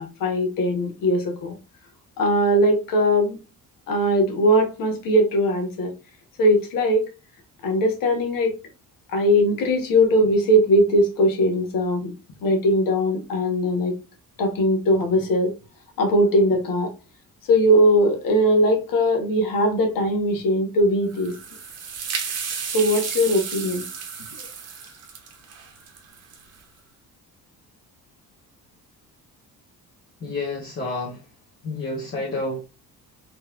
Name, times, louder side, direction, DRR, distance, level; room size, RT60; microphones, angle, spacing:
voice 1, 0.0-1.5 2.2-3.4 3.9-5.9 6.4-7.1 7.6-8.6 9.1-12.1 12.4-14.0 14.4-15.5 16.0-16.9 17.5-21.4 22.7-23.9 24.4-24.5, equal, 70° left, 1.1 m, -20 dB
sound 1, 21.1-26.6, right 6 dB, 45° right, 0.8 m, -33 dB
voice 2, 30.2-31.1 31.6-32.6, left 2 dB, 40° left, 1.1 m, -29 dB
3.8 x 3.1 x 2.3 m
cardioid pair, 140°, 35 cm